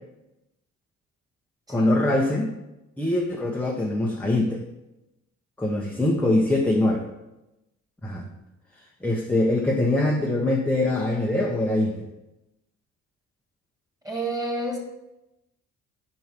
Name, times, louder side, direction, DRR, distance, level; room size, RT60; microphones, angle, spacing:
voice 1, 1.7-2.5 3.0-4.6 5.6-7.0 8.0-8.2 9.0-11.9, left 1 dB, 5° left, -2 dB, 0.8 m, -23 dB
voice 2, 14.0-14.8, right 1 dB, 10° right, 0 dB, 2.1 m, -29 dB
5.4 x 4.7 x 5.8 m, 0.94 s
cardioid pair, 90°, 30 cm